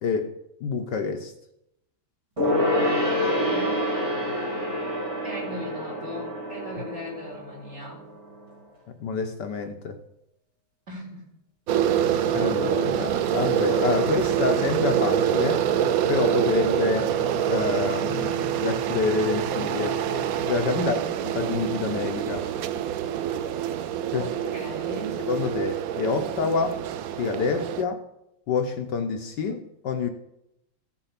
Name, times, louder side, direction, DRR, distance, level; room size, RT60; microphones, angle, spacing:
voice 1, 0.6-1.3 9.0-10.0 12.3-15.7 16.1-17.1 17.5-20.0 20.5-21.0 21.3-22.5 24.1-24.3 25.2-26.8 27.2-28.0 28.5-30.1, left 5 dB, 65° left, 6 dB, 1.4 m, -27 dB
Gong, 2.4-8.3 8.5-8.6, left 1 dB, 15° right, 2.4 m, -27 dB
voice 2, 2.9-3.9 5.2-8.0 10.9-11.3 20.7-21.1 24.2-25.2, left 1 dB, 35° right, -3 dB, 4.5 m, -38 dB
sound 1, 11.7-27.8, right 10 dB, 75° right, 0.8 m, -26 dB
sound 2, 12.0-20.6, left 8 dB, 85° left, 2.9 m, -41 dB
15.0 x 6.9 x 5.8 m, 0.82 s
omnidirectional pair, 2.1 m